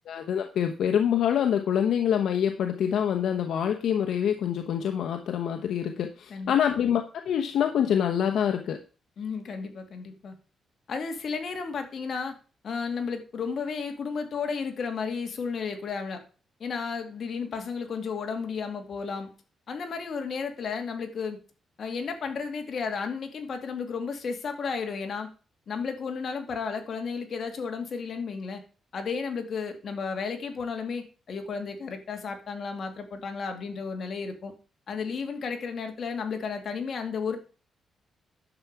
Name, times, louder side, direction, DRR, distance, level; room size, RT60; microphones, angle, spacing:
voice 1, 0.1-8.8, left 9 dB, 75° left, 5 dB, 1.0 m, -26 dB
voice 2, 9.2-10.3 10.9-12.3 12.6-16.2 16.6-19.3 19.7-21.4 21.8-25.3 25.7-28.6 28.9-34.5 34.9-37.4, left 5 dB, 55° left, 5 dB, 2.3 m, -33 dB
11.0 x 7.0 x 4.7 m, 0.36 s
cardioid pair, 100°, 0 cm